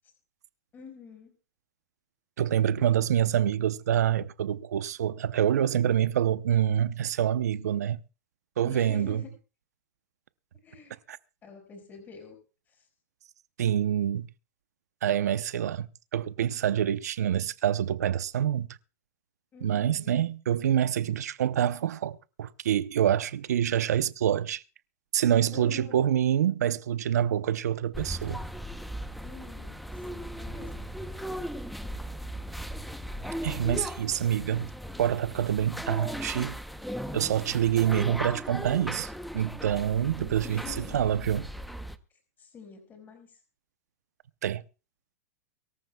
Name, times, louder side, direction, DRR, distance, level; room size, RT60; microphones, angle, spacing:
voice 1, 0.7-1.3 8.6-9.3 10.6-11.0 11.4-12.4 19.5-20.2 25.5-26.0 29.2-30.9 40.1-41.0 42.4-43.4, left 5 dB, 20° left, 4.9 m, -47 dB
voice 2, 2.4-8.0 8.6-9.2 11.1-11.2 13.6-14.3 15.0-18.7 19.6-24.6 25.1-28.4 33.4-34.7 35.0-36.6 37.1-41.5 44.4-44.6, right 10 dB, 85° right, 0.7 m, -26 dB
sound 1, 27.9-42.0, equal, ahead, 0.7 m, -37 dB
24.0 x 13.5 x 2.3 m
hypercardioid pair, 135°, 9 cm